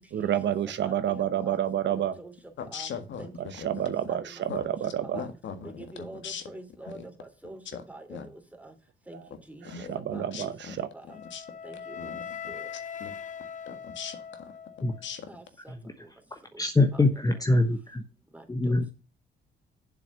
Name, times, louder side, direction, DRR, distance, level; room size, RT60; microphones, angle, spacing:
voice 1, 0.1-2.1 3.4-5.2 9.7-10.9, right 10 dB, 65° right, 12 dB, 1.0 m, -29 dB
voice 2, 0.8-1.6 1.9-2.3 2.6-2.9 3.2-3.3 4.1-4.4 5.1-5.3 5.6-7.6 7.9-8.2 8.6-8.7 9.1-9.2 9.5-9.6 10.1-10.5 10.9-11.2 11.6-12.1 12.5-12.7 15.3-15.7 16.5-16.6 17.1-17.2 18.3-18.7, right 2 dB, 5° right, 4 dB, 2.8 m, -45 dB
voice 3, 2.6-3.3 3.6-3.7 4.5-4.7 5.1-6.4 6.9-7.0 8.1-8.3 9.6-10.8 11.3-11.4 12.0-12.2 13.0-13.1 13.7-14.5 15.0-15.2, left 7 dB, 70° left, 8 dB, 1.7 m, -39 dB
Wind instrument woodwind instrument, 11.1-15.1, left 7 dB, 40° left, 0.9 m, -41 dB
voice 4, 16.3-18.0 18.5-18.9, left 2 dB, 20° left, 6 dB, 1.0 m, -24 dB
7.5 x 6.2 x 6.8 m, 0.33 s
cardioid pair, 90°, 20 cm